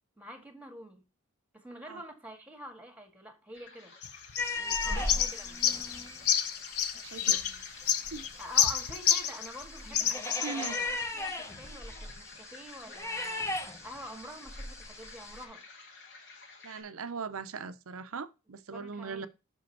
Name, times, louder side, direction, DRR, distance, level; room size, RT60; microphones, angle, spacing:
voice 1, 0.2-1.0 1.5-3.9 4.6-5.6 7.2-7.6 8.4-15.6 18.5-19.3, equal, 5° right, 1.7 m, -47 dB
sound 1, 3.5-16.8, left 4 dB, 55° left, 2.1 m, -52 dB
sound 2, 4.0-9.6 9.9-10.8, left 9 dB, 90° left, 0.8 m, -29 dB
sound 3, 4.4-15.4, left 2 dB, 15° left, 1.0 m, -38 dB
voice 2, 6.9-7.4 8.1-8.3 10.4-10.8 16.6-19.3, right 5 dB, 70° right, 0.7 m, -40 dB
6.1 x 5.2 x 4.5 m
head